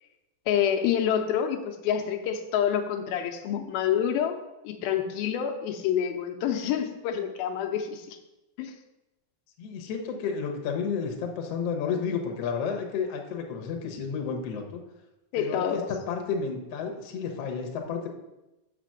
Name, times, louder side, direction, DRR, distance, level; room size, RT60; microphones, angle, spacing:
voice 1, 0.5-8.2 8.6-8.7 15.3-15.9, left 9 dB, 90° left, 5 dB, 2.5 m, -27 dB
voice 2, 9.6-14.8 15.3-18.1, left 6 dB, 70° left, 3 dB, 1.5 m, -31 dB
6.6 x 5.9 x 6.4 m, 0.99 s
omnidirectional pair, 4.3 m